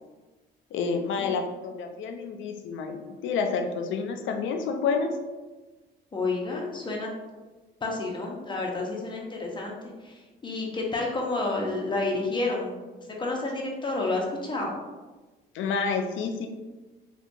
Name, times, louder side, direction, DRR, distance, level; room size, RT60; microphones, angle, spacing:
voice 1, 0.7-5.1 15.5-16.5, left 5 dB, 75° left, 5 dB, 0.4 m, -29 dB
voice 2, 6.1-7.1 7.8-12.7 13.2-14.7, left 2 dB, 25° left, -1 dB, 0.6 m, -30 dB
2.8 x 2.2 x 2.5 m, 1.2 s
cardioid pair, 90°, 20 cm